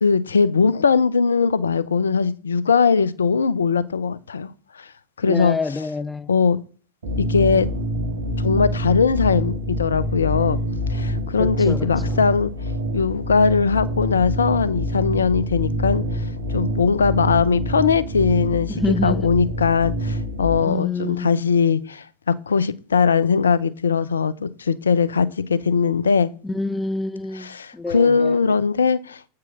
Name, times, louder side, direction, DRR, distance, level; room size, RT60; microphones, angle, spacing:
voice 1, 0.0-4.5 4.7-4.9 5.2-5.6 6.3-6.6 7.2-7.7 8.4-10.6 10.9-12.5 12.9-16.2 16.5-18.7 19.0-26.3 27.4-29.2, left 5 dB, 80° left, 0.6 m, -20 dB
voice 2, 5.2-6.3 11.4-12.2 18.7-19.3 20.6-21.3 26.4-28.4, left 3 dB, 10° left, 0.4 m, -27 dB
sound 1, 7.0-20.6, equal, 75° right, 1.9 m, -26 dB
8.3 x 4.7 x 6.1 m
figure-of-eight pair, 90°, 0 cm